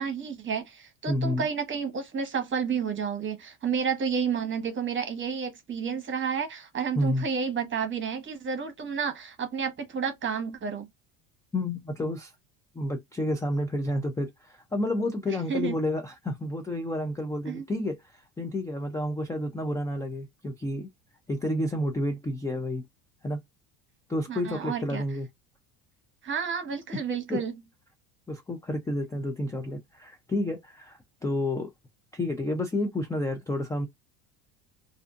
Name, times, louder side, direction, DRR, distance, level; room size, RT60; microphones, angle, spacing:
voice 1, 0.0-10.9 15.5-15.7 17.4-17.6 24.3-25.0 26.2-27.5, right 6 dB, 30° right, 1.0 m, -31 dB
voice 2, 1.1-1.5 7.0-7.3 11.5-12.3 12.7-20.9 21.3-22.8 23.2-23.4 24.1-25.3 27.3-27.4 28.3-31.7 32.1-33.9, left 1 dB, 10° left, 0.4 m, -30 dB
2.6 x 2.4 x 2.4 m
supercardioid pair, 100°, 40 cm